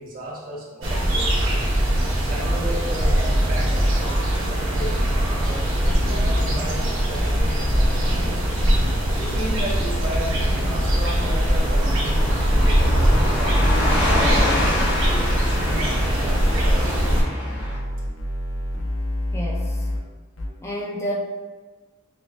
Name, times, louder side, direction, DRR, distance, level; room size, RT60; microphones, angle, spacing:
voice 1, 0.0-1.4 2.1-8.7 9.2-17.6, right 1 dB, 45° right, -6 dB, 1.1 m, -35 dB
sound 1, 0.8-17.2, right 1 dB, 70° right, 0.8 m, -21 dB
Car passing by / Truck, 3.4-17.8, left 1 dB, 55° left, 0.9 m, -30 dB
sound 2, 4.8-6.6 7.2-9.7 10.0-13.0 13.6-20.0 20.4-20.5, left 1 dB, 80° left, 0.7 m, -28 dB
voice 2, 19.3-19.9 20.6-21.1, equal, 15° left, -3 dB, 0.3 m, -30 dB
5.9 x 2.2 x 2.4 m, 1.4 s
head